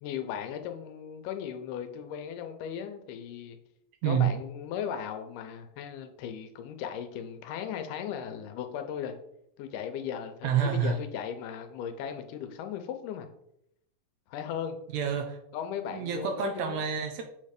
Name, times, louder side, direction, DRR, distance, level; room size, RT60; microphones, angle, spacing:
voice 1, 0.0-3.6 4.1-9.1 9.6-13.3 14.3-14.8 15.5-16.8, left 8 dB, 90° left, 7 dB, 2.2 m, -37 dB
voice 2, 4.0-4.4 10.4-11.0 14.9-15.4 15.9-17.3, right 7 dB, 80° right, 5 dB, 1.8 m, -28 dB
7.0 x 3.2 x 5.1 m, 0.78 s
omnidirectional pair, 3.7 m